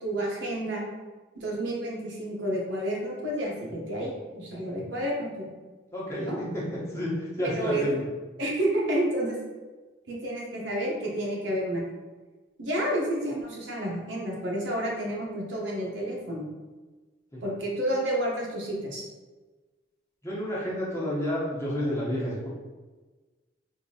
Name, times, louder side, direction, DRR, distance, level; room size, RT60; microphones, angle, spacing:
voice 1, 0.0-0.8 1.3-5.5 6.2-6.4 7.4-7.8 8.4-9.4 10.1-11.8 12.6-16.5 17.4-19.1, right 1 dB, 90° right, -3 dB, 0.9 m, -30 dB
voice 2, 5.9-6.6 6.9-8.0 17.3-17.4 20.2-22.5, equal, 15° left, -7 dB, 0.9 m, -30 dB
3.5 x 2.6 x 2.8 m, 1.3 s
head